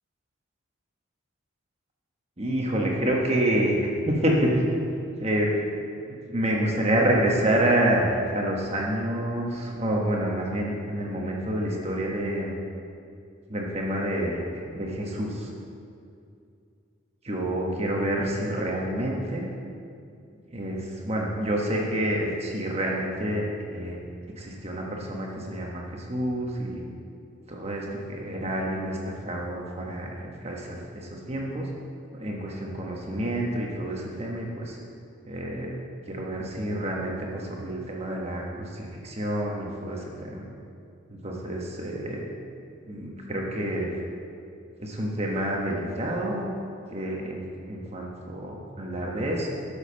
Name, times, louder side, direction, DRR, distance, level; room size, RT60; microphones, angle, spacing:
voice 1, 2.4-4.6 5.2-5.5 6.1-12.6 13.5-15.5 17.2-19.5 20.5-24.1 24.4-26.8 27.5-29.0 29.2-31.7 32.2-34.8 35.2-35.7 36.1-40.4 41.2-42.2 42.9-43.9 44.8-46.5 46.9-47.4 47.7-49.5, right 1 dB, 30° right, -1 dB, 1.2 m, -28 dB
7.9 x 6.5 x 5.6 m, 2.4 s
head